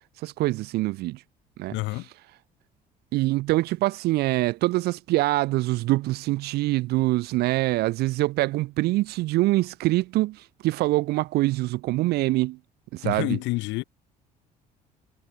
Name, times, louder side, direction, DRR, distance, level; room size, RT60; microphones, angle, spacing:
voice 1, 0.2-1.2 1.6-1.8 3.1-12.6 12.9-13.4, right 19 dB, 50° right, 0.5 m, -24 dB
voice 2, 1.7-2.1 13.0-13.8, left 22 dB, 60° left, 1.4 m, -28 dB
figure-of-eight pair, 55°, 21 cm